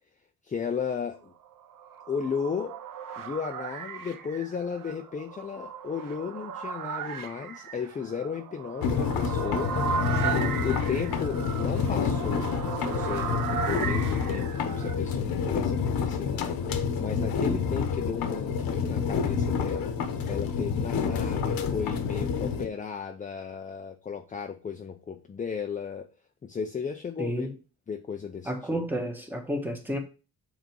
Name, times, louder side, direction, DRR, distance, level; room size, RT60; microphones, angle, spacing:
voice 1, 0.4-1.3 2.1-2.7 3.2-9.8 10.6-12.5 12.8-19.9 20.3-26.1 26.4-27.5 27.9-28.8, left 6 dB, 20° left, 0.5 m, -35 dB
sound 1, 1.5-15.0, right 7 dB, 65° right, 1.0 m, -36 dB
sound 2, 8.8-22.7, left 6 dB, 80° left, 1.2 m, -28 dB
voice 2, 10.2-10.6 27.2-27.5 28.4-30.0, equal, 5° right, 1.3 m, -31 dB
7.6 x 4.1 x 4.6 m
wide cardioid pair, 165°, 35 cm